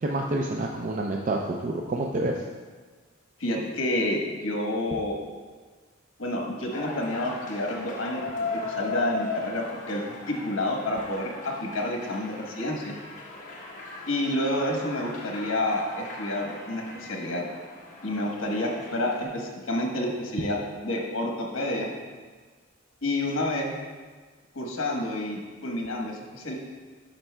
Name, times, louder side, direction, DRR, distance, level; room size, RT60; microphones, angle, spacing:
voice 1, 0.0-2.4, right 2 dB, 40° right, 0 dB, 0.4 m, -28 dB
voice 2, 3.4-5.2 6.2-12.9 14.1-17.4 18.0-20.6 20.8-21.9 23.0-23.7 24.5-26.5, left 1 dB, 80° left, 0 dB, 1.2 m, -29 dB
sound 1, 6.7-19.2, left 3 dB, 40° left, 1.2 m, -38 dB
11.5 x 5.2 x 2.2 m, 1.4 s
head